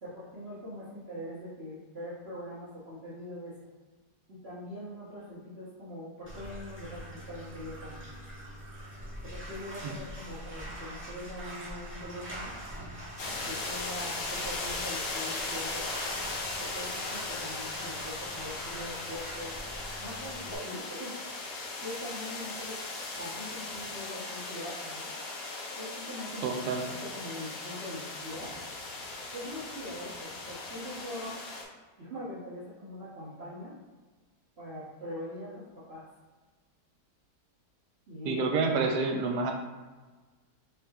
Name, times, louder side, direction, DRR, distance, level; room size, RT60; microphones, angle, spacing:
voice 1, 0.0-3.6 4.3-8.0 9.2-12.5 13.3-15.9 16.6-19.6 20.0-21.2 21.8-22.8 23.1-25.1 25.8-28.5 29.3-31.4 32.0-33.8 34.6-36.0 38.1-38.6, left 1 dB, 40° right, -11 dB, 1.4 m, -42 dB
Bathtub (filling or washing), 6.2-20.6, right 1 dB, 10° right, 1.3 m, -44 dB
sound 1, 13.2-31.6, left 3 dB, 80° left, 1.3 m, -38 dB
voice 2, 26.4-26.8 38.2-39.5, right 4 dB, 85° right, 2 dB, 1.3 m, -28 dB
5.6 x 3.8 x 2.4 m, 1.3 s
omnidirectional pair, 1.7 m